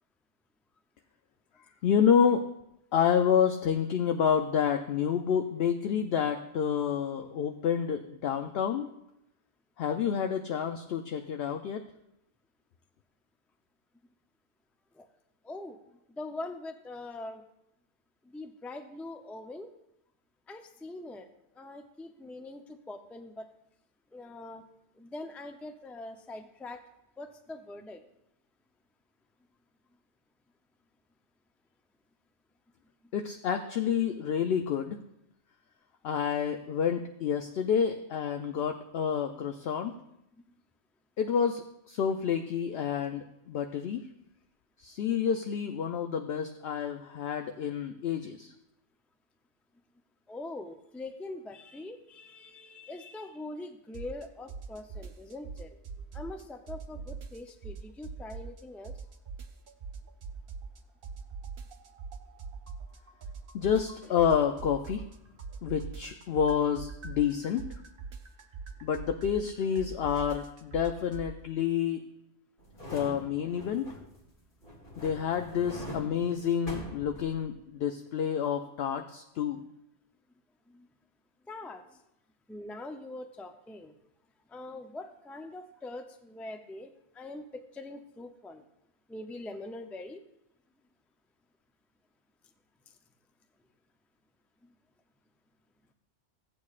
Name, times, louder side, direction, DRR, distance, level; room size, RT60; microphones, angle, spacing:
voice 1, 1.8-2.5 2.9-8.9 9.8-11.8 33.1-35.0 36.0-39.9 41.2-44.0 44.8-48.5 63.5-65.0 65.6-67.6 68.8-72.0 72.9-73.9 75.0-79.6, left 7 dB, 65° left, 6 dB, 0.7 m, -29 dB
voice 2, 15.4-15.8 16.1-17.4 18.3-19.7 20.5-21.3 21.6-22.6 22.9-23.5 24.1-24.6 25.0-26.8 27.2-28.0 50.3-55.7 56.1-58.9 80.7-80.9 81.5-81.8 82.5-84.0 84.5-86.9 87.1-87.4 87.7-88.6 89.1-90.2, left 2 dB, ahead, 6 dB, 0.3 m, -43 dB
sound 1, 53.9-54.2 54.5-56.4 56.7-58.6 58.8-60.8 61.0-65.1 65.4-71.3, right 5 dB, 55° right, 0.9 m, -41 dB
sound 2, 72.6-74.3 74.6-77.7 78.1-78.2, equal, 45° left, 2.4 m, -43 dB
16.0 x 8.3 x 2.4 m, 0.83 s
omnidirectional pair, 1.2 m